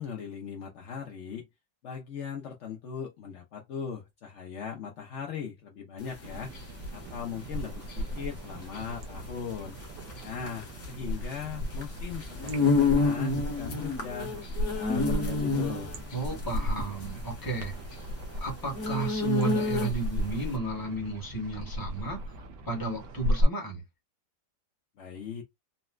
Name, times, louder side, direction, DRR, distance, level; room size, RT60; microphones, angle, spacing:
voice 1, 0.0-1.5 1.8-6.5 6.9-9.8 10.2-14.3 14.6-15.9 25.0-25.4, left 7 dB, 80° left, 0.6 m, -39 dB
sound 1, 6.0-20.2, left 3 dB, 50° left, 1.1 m, -30 dB
sound 2, 6.2-23.4, equal, 75° right, 1.3 m, -36 dB
voice 2, 16.1-17.7 18.4-22.2 22.7-23.8, right 3 dB, 15° left, 0.8 m, -33 dB
4.0 x 2.1 x 2.3 m
omnidirectional pair, 2.0 m